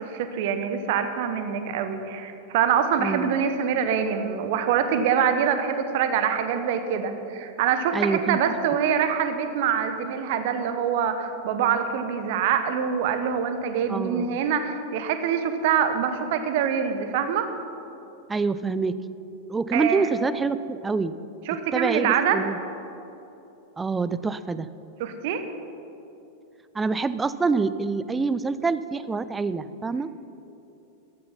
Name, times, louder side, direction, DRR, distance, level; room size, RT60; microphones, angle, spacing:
voice 1, 0.0-17.5 19.7-20.1 21.5-22.4 25.0-25.4, right 7 dB, 50° right, 8 dB, 1.2 m, -25 dB
voice 2, 3.0-3.3 7.9-8.4 13.9-14.4 18.3-19.0 19.5-21.1 21.7-22.6 23.8-24.7 26.7-30.1, right 4 dB, 15° right, 14 dB, 0.5 m, -26 dB
14.5 x 12.5 x 5.7 m, 2.9 s
figure-of-eight pair, 90°, 0 cm